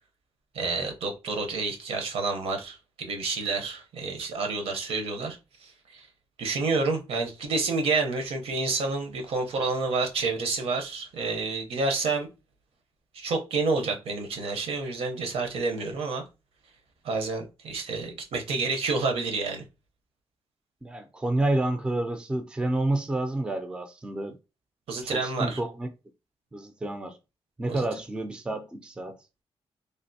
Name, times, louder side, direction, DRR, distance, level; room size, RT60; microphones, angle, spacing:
voice 1, 0.5-6.1 6.4-12.3 13.1-16.2 17.0-19.6 24.9-25.6 27.7-27.9, right 3 dB, 75° right, 0.7 m, -29 dB
voice 2, 20.8-24.4 25.0-25.9 26.5-27.2 27.6-29.2, right 2 dB, 10° right, 0.3 m, -29 dB
3.2 x 2.5 x 2.7 m
wide cardioid pair, 150°, 10 cm